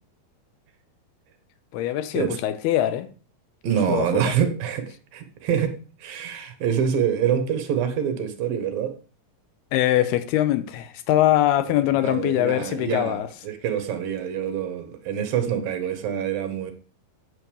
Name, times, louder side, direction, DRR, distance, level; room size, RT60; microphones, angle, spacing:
voice 1, 1.7-3.1 3.9-4.3 9.7-13.3, left 13 dB, 85° left, 2.8 m, -22 dB
voice 2, 3.6-9.0 11.7-16.7, right 8 dB, 70° right, 2.9 m, -26 dB
8.7 x 6.8 x 7.0 m
omnidirectional pair, 4.6 m